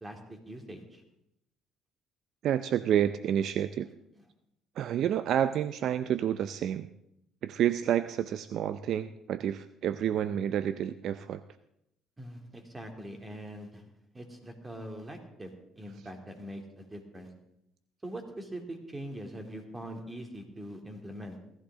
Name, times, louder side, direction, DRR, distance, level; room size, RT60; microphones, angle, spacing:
voice 1, 0.0-1.0 12.2-13.8 14.1-17.3 18.0-21.4, right 1 dB, 20° right, 3 dB, 2.8 m, -42 dB
voice 2, 2.4-3.9 4.8-6.9 7.4-11.4, right 10 dB, 65° right, 13 dB, 0.5 m, -29 dB
17.0 x 14.0 x 3.7 m, 0.79 s
supercardioid pair, 85°, 0 cm